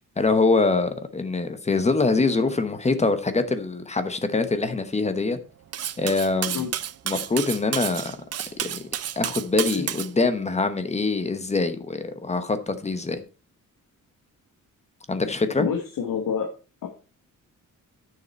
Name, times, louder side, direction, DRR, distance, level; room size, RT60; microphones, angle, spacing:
voice 1, 0.2-5.4 6.0-6.7 7.1-8.1 8.6-8.8 9.2-13.2 15.1-15.7, left 3 dB, 20° left, 1.0 m, -24 dB
Cutlery silverware, 5.7-10.1, right 10 dB, 50° right, 0.5 m, -30 dB
voice 2, 15.6-16.5 16.8-16.9, left 7 dB, 85° left, 1.6 m, -27 dB
10.5 x 6.7 x 4.3 m
wide cardioid pair, 165°, 33 cm